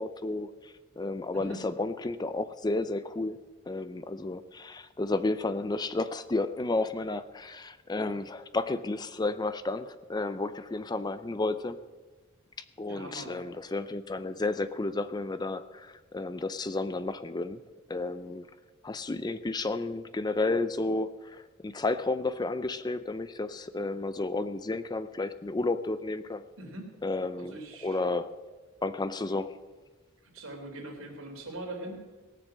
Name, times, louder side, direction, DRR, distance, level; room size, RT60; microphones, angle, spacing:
voice 1, 0.0-3.4 3.7-11.8 12.8-17.6 17.9-18.5 18.8-26.4 27.0-27.5 27.8-28.3 28.8-29.6, left 2 dB, 20° left, 12 dB, 0.4 m, -32 dB
voice 2, 12.8-13.3 26.6-27.0 27.4-28.0 29.3-29.4 30.2-32.3, right 1 dB, 75° right, 1 dB, 3.4 m, -42 dB
18.5 x 6.8 x 7.4 m, 1.2 s
head